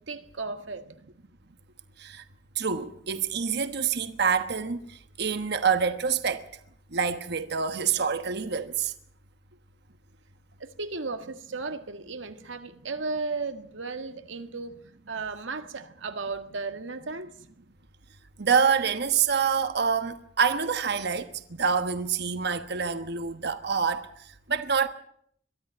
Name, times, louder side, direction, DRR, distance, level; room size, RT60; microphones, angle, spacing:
voice 1, 0.1-0.8 10.6-14.8 15.1-17.3, right 3 dB, 80° right, 1.7 m, -35 dB
voice 2, 2.5-6.5 6.9-8.9 18.4-24.1 24.5-24.9, right 6 dB, 60° right, 1.2 m, -26 dB
22.5 x 13.0 x 8.8 m
head